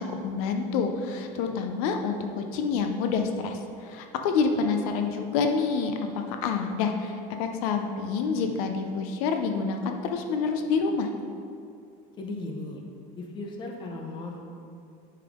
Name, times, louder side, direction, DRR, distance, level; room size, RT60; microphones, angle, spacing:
voice 1, 0.0-11.1, left 5 dB, 65° left, 5 dB, 0.6 m, -28 dB
voice 2, 12.2-12.8 13.2-14.4, left 2 dB, 25° left, 2 dB, 0.7 m, -36 dB
9.5 x 5.6 x 3.6 m, 2.5 s
cardioid pair, 170°, 20 cm